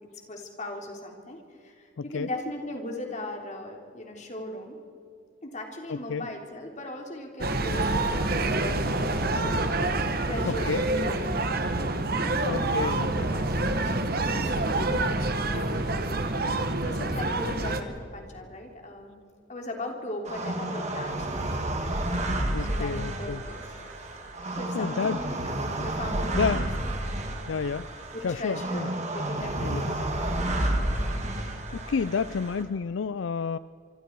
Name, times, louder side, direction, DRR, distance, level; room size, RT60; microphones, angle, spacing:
voice 1, 0.0-4.8 5.4-9.8 10.2-11.4 12.3-16.5 16.8-19.2 19.5-21.5 22.6-23.7 24.5-26.7 28.1-30.7, left 1 dB, 40° left, 2 dB, 3.4 m, -39 dB
voice 2, 2.0-2.3 5.9-6.3 10.5-10.9 12.5-13.1 22.5-23.4 24.4-25.2 26.4-26.7 27.5-27.9 28.2-28.9 29.6-29.8 31.3-33.6, left 5 dB, 75° left, 15 dB, 0.4 m, -30 dB
sound 1, 7.4-17.8, right 2 dB, 50° right, 1.6 m, -27 dB
sound 2, 20.2-32.6, right 1 dB, 35° right, 2.6 m, -31 dB
26.0 x 25.0 x 4.7 m, 2.4 s
head